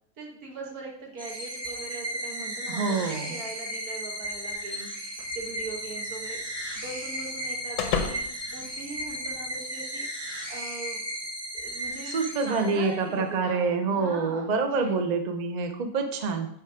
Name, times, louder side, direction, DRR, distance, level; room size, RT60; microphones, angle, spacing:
voice 1, 0.2-6.4 6.8-11.0 11.6-12.2 12.4-15.0, right 3 dB, 70° right, -1 dB, 1.9 m, -41 dB
sound 1, 1.2-13.1, equal, 20° right, 1.0 m, -35 dB
voice 2, 2.7-3.4 12.1-16.5, right 4 dB, 45° right, 6 dB, 0.5 m, -27 dB
sound 2, 5.2-9.6, left 6 dB, 85° left, 1.2 m, -36 dB
6.2 x 4.6 x 4.9 m, 0.70 s
omnidirectional pair, 1.6 m